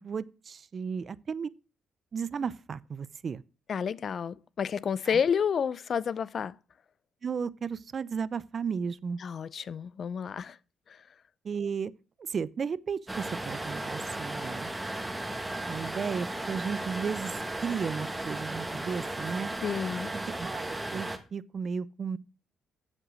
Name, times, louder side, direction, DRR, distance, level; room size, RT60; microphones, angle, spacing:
voice 1, 0.0-1.5 2.1-3.4 5.1-5.2 7.2-9.2 11.4-11.9 12.3-14.7 15.7-17.3 17.6-19.5 20.4-20.7 20.9-22.2, right 6 dB, 45° right, 0.5 m, -34 dB
voice 2, 3.7-6.5 9.2-10.6 19.6-20.1, left 7 dB, 50° left, 0.5 m, -30 dB
sound 1, 13.1-21.2, right 1 dB, 10° right, 1.6 m, -35 dB
7.8 x 7.6 x 6.3 m
cardioid pair, 90°, 0 cm